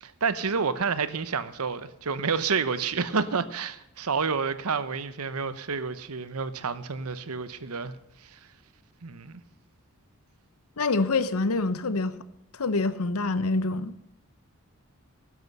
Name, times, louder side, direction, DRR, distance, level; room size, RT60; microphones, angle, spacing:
voice 1, 0.0-7.9 8.3-8.4 9.0-9.4, right 5 dB, 85° right, 0.9 m, -29 dB
voice 2, 10.8-12.2 12.6-13.9, left 3 dB, 85° left, 0.9 m, -26 dB
12.5 x 11.0 x 5.4 m
head